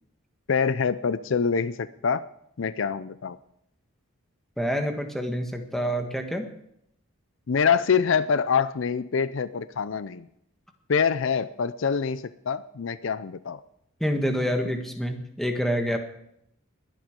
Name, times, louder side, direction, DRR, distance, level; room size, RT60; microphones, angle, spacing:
voice 1, 0.5-2.2 2.6-3.4 7.5-10.3 10.9-13.6, left 6 dB, 65° left, 15 dB, 0.5 m, -25 dB
voice 2, 4.6-6.4 14.0-16.0, equal, ahead, 4 dB, 1.5 m, -27 dB
21.0 x 9.2 x 5.2 m, 0.75 s
head